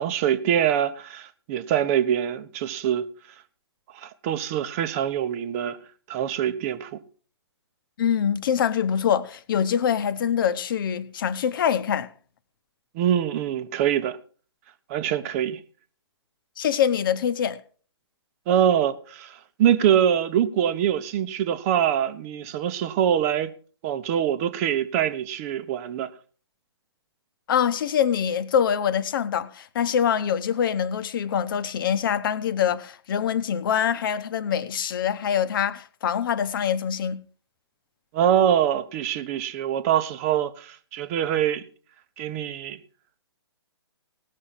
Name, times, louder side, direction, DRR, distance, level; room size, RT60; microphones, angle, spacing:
voice 1, 0.0-3.0 3.9-5.8 6.1-7.0 12.9-14.2 14.9-15.6 18.5-23.5 23.8-26.1 38.1-41.6 42.2-42.8, right 10 dB, 30° right, 0.9 m, -24 dB
voice 2, 8.0-12.1 16.6-17.6 27.5-37.2, left 8 dB, 50° left, 1.0 m, -24 dB
18.0 x 6.5 x 5.7 m
hypercardioid pair, 145°, 14 cm